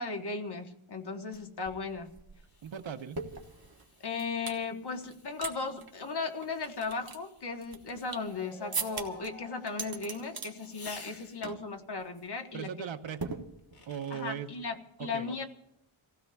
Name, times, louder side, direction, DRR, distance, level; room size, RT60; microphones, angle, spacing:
voice 1, 0.0-2.1 4.0-12.9 14.1-15.4, left 4 dB, 50° left, 4 dB, 1.3 m, -36 dB
sound 1, 1.3-1.4 1.6-4.6 5.1-5.5 5.8-5.9 6.4-8.3 8.7-9.3 9.7-10.5 10.9-11.2 11.4-11.7 12.0-12.2 13.2-14.0, right 4 dB, 45° right, 1.2 m, -40 dB
Fireworks, 1.7-11.7 13.1-14.3, left 4 dB, 80° left, 2.5 m, -56 dB
voice 2, 2.6-3.2 12.5-13.5 13.9-14.5 15.0-15.3, right 8 dB, 65° right, 9 dB, 0.8 m, -39 dB
sound 2, 7.9-10.8, equal, 10° left, 3.2 m, -51 dB
29.5 x 15.5 x 2.3 m, 0.79 s
wide cardioid pair, 145°, 50 cm